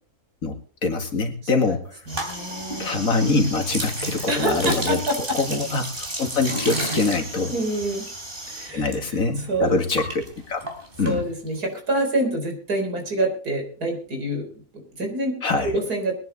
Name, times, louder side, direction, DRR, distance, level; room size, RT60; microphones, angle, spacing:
voice 1, 0.4-1.8 2.8-5.0 5.4-7.5 8.7-10.7 11.0-11.2 15.4-15.7, left 3 dB, 60° left, 5 dB, 2.6 m, -24 dB
sound 1, 2.1-9.0 9.2-11.6, right 1 dB, 35° right, 3.3 m, -32 dB
voice 2, 2.1-2.9 4.3-5.4 7.5-8.1 8.5-9.8 11.0-15.4 15.6-16.1, right 1 dB, 80° right, 3 dB, 4.6 m, -27 dB
22.5 x 10.0 x 4.0 m, 0.41 s
omnidirectional pair, 1.6 m